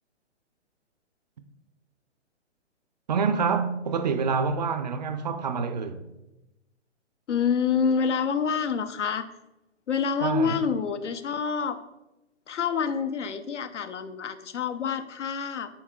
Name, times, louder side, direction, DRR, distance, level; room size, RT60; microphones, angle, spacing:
voice 1, 3.1-6.1 10.2-10.6, right 5 dB, 40° right, 0.4 m, -27 dB
voice 2, 7.3-9.3 9.9-11.8 12.5-15.7, left 6 dB, 80° left, 0.7 m, -27 dB
8.5 x 5.6 x 2.2 m
hypercardioid pair, 130°, 36 cm